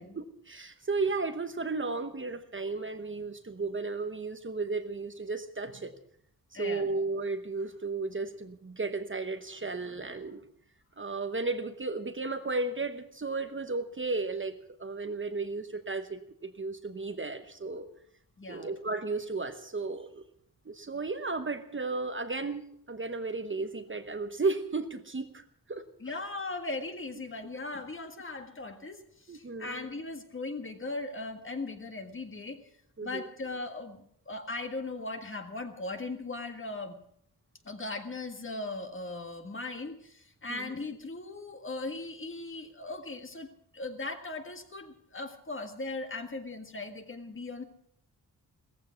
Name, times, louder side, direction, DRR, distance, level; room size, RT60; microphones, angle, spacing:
voice 1, 0.2-5.9 6.5-10.4 11.0-17.9 18.5-20.2 20.6-25.4 25.7-25.8 29.3-29.8 33.0-33.3 40.5-40.7, right 3 dB, 30° right, 8 dB, 1.0 m, -34 dB
voice 2, 6.5-7.0 18.4-18.7 26.0-32.6 33.0-36.9 37.6-47.6, left 2 dB, 30° left, 6 dB, 1.7 m, -38 dB
17.0 x 15.0 x 5.8 m, 0.67 s
wide cardioid pair, 145°, 39 cm